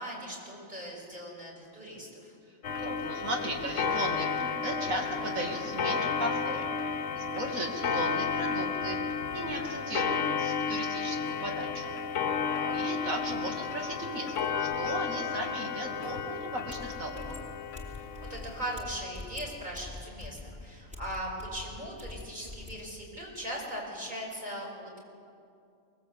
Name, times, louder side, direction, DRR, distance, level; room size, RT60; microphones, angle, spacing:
voice 1, 0.0-2.3 12.5-12.7 18.2-25.0, equal, 35° right, -2 dB, 6.2 m, -39 dB
Clock, 2.6-18.8, left 6 dB, 65° left, 1.2 m, -32 dB
voice 2, 2.8-9.0 9.3-11.9 12.7-17.4, right 1 dB, 75° right, 1 dB, 3.0 m, -36 dB
sound 1, 16.7-22.8, left 2 dB, 5° right, 3.3 m, -44 dB
24.0 x 20.5 x 8.2 m, 2.5 s
omnidirectional pair, 1.4 m